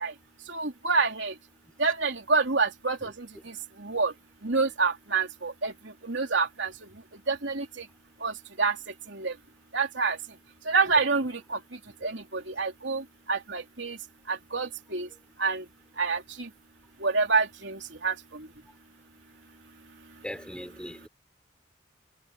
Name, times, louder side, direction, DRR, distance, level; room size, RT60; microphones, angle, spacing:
voice 1, 0.5-1.3 1.8-3.3 3.8-4.1 4.4-5.7 6.0-6.7 7.3-7.6 8.2-8.3 8.6-8.7 9.1-9.3 9.7-10.2 10.7-11.6 12.0-13.0 13.3-14.0 14.3-15.1 15.4-15.6 16.0-16.5 17.0-18.1, right 4 dB, 75° right, 3.3 m, -27 dB
voice 2, 20.2-21.1, equal, 5° left, 5.3 m, -39 dB
head